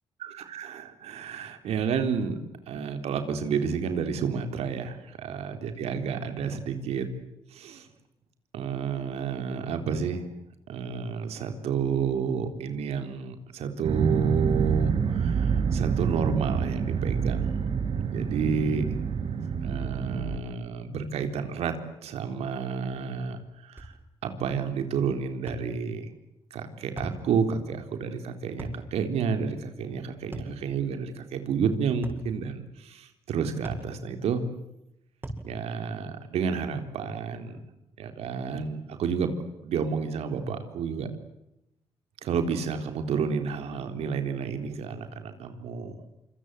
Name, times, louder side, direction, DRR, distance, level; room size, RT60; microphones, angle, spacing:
voice 1, 0.2-2.4 2.7-7.1 7.5-7.9 8.5-10.3 10.7-17.6 18.1-19.0 19.6-21.7 22.0-23.9 24.2-26.1 26.5-34.4 35.4-37.6 38.0-39.3 39.6-41.1 42.2-46.1, right 6 dB, 85° right, 7 dB, 3.8 m, -30 dB
sound 1, 13.8-20.4, right 6 dB, 70° right, 6.1 m, -27 dB
sound 2, 23.8-24.0 25.5-25.7 27.0-27.2 28.6-28.8 30.3-30.6 32.0-32.3 33.6-33.9 35.2-35.5, right 1 dB, 20° right, 7.8 m, -37 dB
27.0 x 26.5 x 8.3 m, 0.85 s
cardioid pair, 80°, 10 cm